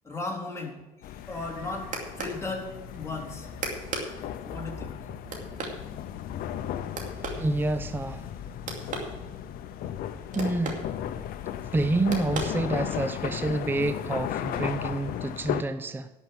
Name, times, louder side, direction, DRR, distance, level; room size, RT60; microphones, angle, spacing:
voice 1, 0.0-0.7 1.3-1.9 2.2-2.7 2.9-3.5 4.5-4.9, left 3 dB, 15° left, -2 dB, 3.5 m, -35 dB
sound 1, 1.0-15.6, left 10 dB, 65° left, 0.7 m, -35 dB
sound 2, 1.2-13.2, right 3 dB, 50° right, 2.5 m, -40 dB
voice 2, 7.3-8.2 10.3-10.8 11.7-16.1, right 2 dB, 15° right, 11 dB, 0.5 m, -28 dB
11.5 x 6.0 x 8.5 m, 1.1 s
supercardioid pair, 85°, 16 cm